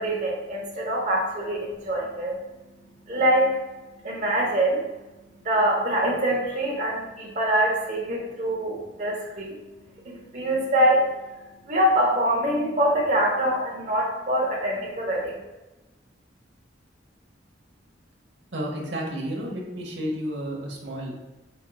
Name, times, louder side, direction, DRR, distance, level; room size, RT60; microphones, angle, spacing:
voice 1, 0.0-2.3 3.1-3.5 4.0-4.8 5.4-9.6 10.0-11.1 11.6-15.4, right 1 dB, 40° right, -3 dB, 0.9 m, -24 dB
voice 2, 18.5-21.1, equal, 70° right, -1 dB, 1.0 m, -31 dB
5.2 x 4.4 x 2.3 m, 1.1 s
head